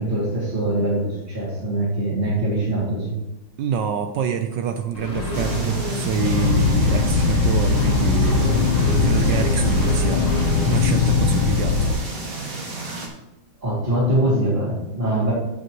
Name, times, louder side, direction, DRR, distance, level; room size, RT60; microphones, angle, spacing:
voice 1, 0.0-3.1 13.6-15.3, right 1 dB, 25° right, -9 dB, 2.8 m, -23 dB
voice 2, 3.6-8.5 9.0-11.8, right 8 dB, 70° right, 7 dB, 1.1 m, -27 dB
Accelerating revving vroom, 4.9-11.2, left 1 dB, 20° left, 1.5 m, -29 dB
sound 1, 5.3-13.1, right 3 dB, 45° right, 2.0 m, -32 dB
sound 2, 6.2-12.0, left 4 dB, 70° left, 1.5 m, -20 dB
16.0 x 5.4 x 3.1 m, 1.0 s
omnidirectional pair, 2.2 m